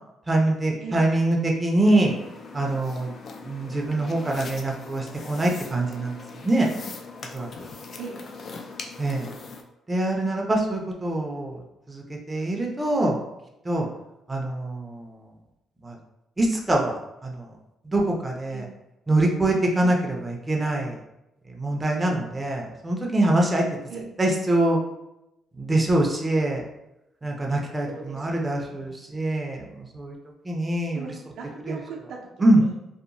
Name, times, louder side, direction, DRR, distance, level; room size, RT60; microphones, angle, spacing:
voice 1, 0.3-2.1 2.5-3.1 3.4-6.7 7.3-7.5 9.0-9.3 9.9-11.6 11.9-13.2 13.6-13.9 14.3-15.2 15.8-16.0 16.4-17.5 17.8-18.6 19.1-21.0 21.5-23.6 24.2-24.8 25.6-26.6 27.2-30.2 30.4-31.0 31.7-31.8 32.4-32.6, right 1 dB, 20° right, 0 dB, 0.5 m, -24 dB
sound 1, 1.9-9.6, left 4 dB, 55° left, 0.3 m, -41 dB
voice 2, 27.8-28.9 30.9-32.7, right 4 dB, 80° right, 0 dB, 0.5 m, -39 dB
2.8 x 2.0 x 2.5 m, 0.89 s
cardioid pair, 90°, 0 cm